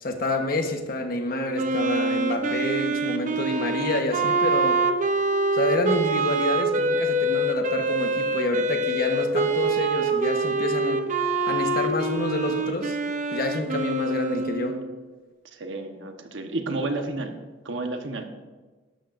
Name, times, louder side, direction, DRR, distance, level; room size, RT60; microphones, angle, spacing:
voice 1, 0.0-4.8 5.5-11.0 11.5-13.0 13.3-14.8, left 1 dB, 50° left, 5 dB, 1.1 m, -28 dB
Wind instrument woodwind instrument, 1.5-15.0, right 2 dB, 40° right, 0.8 m, -25 dB
voice 2, 15.4-17.3 17.6-18.3, right 2 dB, 75° right, 5 dB, 1.1 m, -31 dB
13.0 x 11.5 x 2.6 m, 1.3 s
head